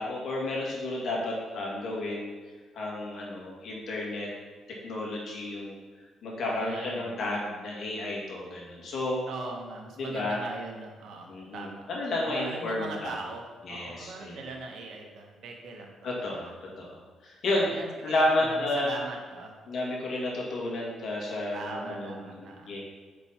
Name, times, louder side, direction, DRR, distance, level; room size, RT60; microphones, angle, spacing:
voice 1, 0.0-2.3 2.7-4.3 4.8-5.8 6.2-9.2 10.0-10.4 11.3-13.1 13.6-14.4 16.0-17.7 18.0-18.9 19.7-22.8, left 2 dB, 65° left, -3 dB, 2.1 m, -31 dB
voice 2, 6.5-7.1 9.3-11.8 12.3-16.5 17.5-19.5 21.5-22.8, right 3 dB, 70° right, 1 dB, 1.3 m, -40 dB
5.3 x 4.2 x 5.7 m, 1.4 s
cardioid pair, 90°, 0 cm